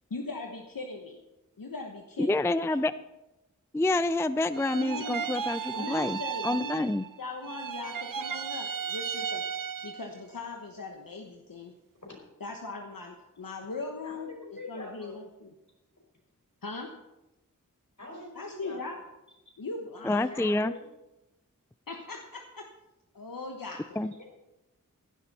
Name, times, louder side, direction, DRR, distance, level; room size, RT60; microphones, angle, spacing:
voice 1, 0.1-1.2 1.6-2.8 4.5-5.2 5.7-6.9 7.2-9.4 9.8-11.7 12.4-14.3 14.7-15.5 16.6-16.9 18.3-19.0 19.6-20.2 21.9-22.6 23.1-24.0, left 3 dB, 80° left, 1.1 m, -39 dB
voice 2, 2.2-2.9 3.7-7.1 20.0-20.7 24.0-24.1, left 2 dB, 10° left, 0.4 m, -28 dB
sound 1, 4.5-7.2 7.4-10.2, right 7 dB, 75° right, 0.6 m, -35 dB
voice 3, 14.0-15.1 18.0-19.0 20.1-20.8 24.1-24.2, left 2 dB, 60° left, 5.0 m, -43 dB
15.5 x 11.5 x 4.2 m
wide cardioid pair, 45°, 33 cm